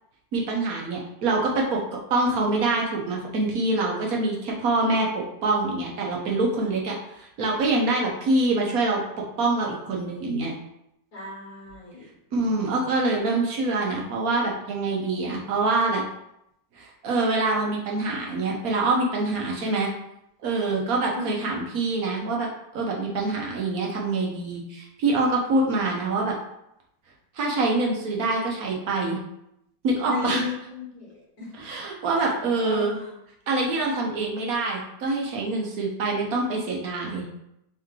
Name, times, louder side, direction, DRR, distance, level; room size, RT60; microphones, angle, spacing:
voice 1, 0.3-10.5 12.3-16.0 16.8-19.9 20.4-22.5 22.7-26.3 27.3-29.2 29.8-30.4 31.6-32.9 33.5-37.2, right 2 dB, 60° right, -1 dB, 1.1 m, -25 dB
voice 2, 11.1-12.0 12.4-12.9 21.1-21.3 30.0-31.5 32.1-33.1, left 2 dB, 50° left, -6 dB, 1.6 m, -36 dB
3.6 x 3.0 x 3.6 m, 0.80 s
omnidirectional pair, 2.0 m